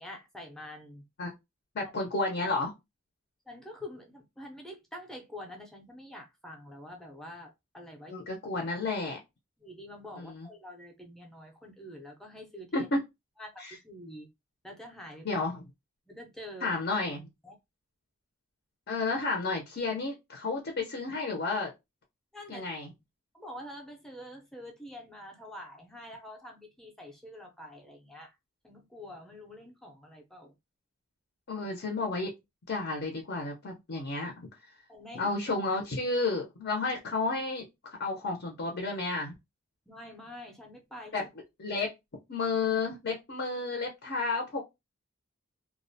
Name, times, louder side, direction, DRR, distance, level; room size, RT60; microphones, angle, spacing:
voice 1, 0.0-1.0 3.5-8.2 9.6-12.9 13.4-14.3 14.6-15.3 16.1-16.8 17.4-17.5 22.3-22.6 23.3-28.3 28.6-30.5 34.9-35.3 39.9-41.3, left 1 dB, ahead, 0.5 m, -46 dB
voice 2, 1.7-2.7 8.1-9.2 10.2-10.5 12.7-13.0 13.6-13.7 15.2-15.6 16.6-17.2 18.9-21.7 22.5-22.9 31.5-32.3 32.7-34.3 35.1-39.3 41.1-41.2 41.6-41.9 42.3-44.6, left 3 dB, 50° left, 0.5 m, -31 dB
2.3 x 2.1 x 2.6 m
head